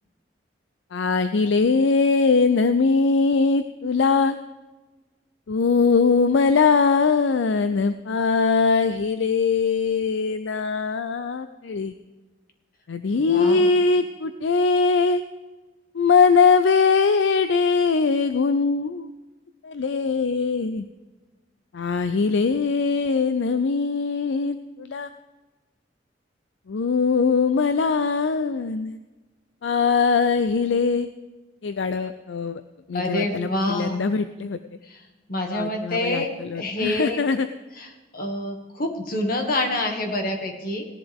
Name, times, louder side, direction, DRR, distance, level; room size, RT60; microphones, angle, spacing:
voice 1, 0.9-4.4 5.5-11.9 12.9-15.2 15.9-19.1 19.6-20.9 21.7-25.1 26.7-29.0 29.6-31.1 31.6-32.6 32.9-34.6 35.5-37.5, left 4 dB, 70° left, 10 dB, 0.5 m, -21 dB
voice 2, 13.1-13.7 32.9-34.0 34.8-35.0 35.3-37.2 37.8-40.8, left 1 dB, 50° left, 3 dB, 1.9 m, -27 dB
16.5 x 11.0 x 3.5 m, 1.2 s
head